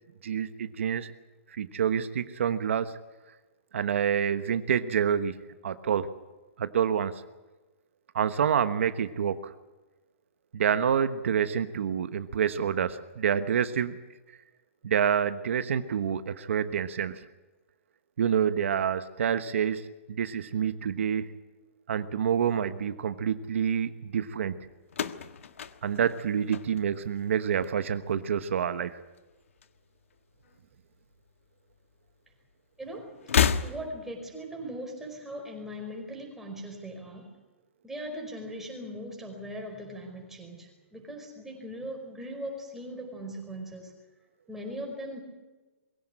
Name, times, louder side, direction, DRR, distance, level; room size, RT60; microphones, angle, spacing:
voice 1, 0.2-1.1 1.5-3.0 3.7-5.4 5.6-6.1 6.6-7.1 8.1-9.5 10.5-14.0 14.8-17.2 18.2-21.3 21.9-24.5 25.8-29.0, right 8 dB, 70° right, 11 dB, 1.2 m, -27 dB
sound 1, 24.9-27.2 27.5-28.1 29.2-30.2 30.4-30.6 31.7-31.8 33.2-34.2, left 7 dB, 80° left, 1.4 m, -30 dB
voice 2, 32.8-33.1 33.6-37.3 37.8-43.9 44.5-45.2, equal, 5° right, 1 dB, 5.0 m, -39 dB
22.5 x 16.5 x 10.0 m, 1.2 s
hypercardioid pair, 160°, 7 cm